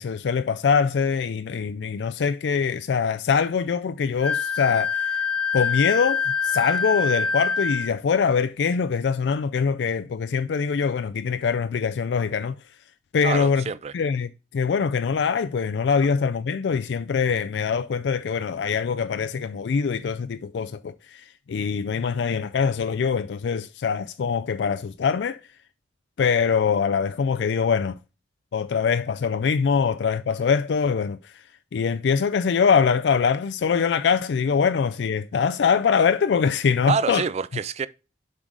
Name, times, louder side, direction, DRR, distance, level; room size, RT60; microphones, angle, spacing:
voice 1, 0.0-5.2 5.5-12.5 13.1-13.7 13.9-25.4 26.2-28.0 28.5-31.3 31.7-37.2, left 6 dB, 75° left, 0.4 m, -23 dB
Wind instrument woodwind instrument, 4.2-7.9, left 6 dB, 5° left, 0.8 m, -25 dB
voice 2, 13.2-13.9 36.9-37.9, right 5 dB, 35° right, 0.4 m, -26 dB
7.4 x 4.8 x 3.8 m
head